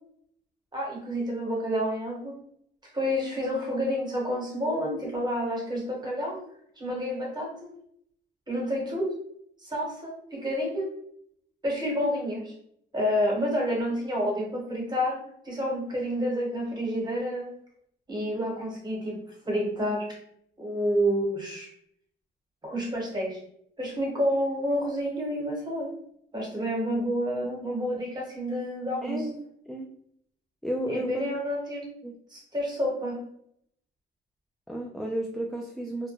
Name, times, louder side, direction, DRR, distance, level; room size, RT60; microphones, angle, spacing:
voice 1, 0.7-2.3 2.9-6.4 6.8-7.7 8.5-9.1 9.6-10.9 11.6-12.5 12.9-15.2 15.4-17.5 18.1-19.2 19.4-20.2 20.6-21.7 22.6-23.4 23.8-25.9 26.3-29.2 30.9-31.9 32.3-33.2, equal, 20° right, -2 dB, 1.2 m, -29 dB
voice 2, 29.0-29.9 30.6-31.3 32.0-32.1 34.7-36.1, right 1 dB, ahead, 0 dB, 0.3 m, -33 dB
2.2 x 2.1 x 3.0 m, 0.68 s
cardioid pair, 90°, 20 cm